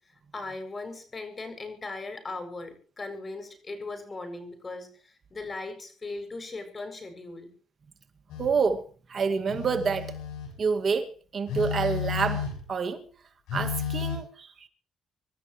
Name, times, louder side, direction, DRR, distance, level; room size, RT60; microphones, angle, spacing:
voice 1, 0.3-7.5, left 3 dB, 30° left, 7.3 m, -38 dB
Telephone, 8.3-8.6 9.5-10.6 11.5-12.7 13.5-14.2, left 7 dB, 85° left, 7.8 m, -32 dB
voice 2, 8.4-10.2 10.6-13.1 13.5-14.7, right 5 dB, 45° right, 2.1 m, -28 dB
26.5 x 13.0 x 3.2 m
cardioid pair, 90°, 0 cm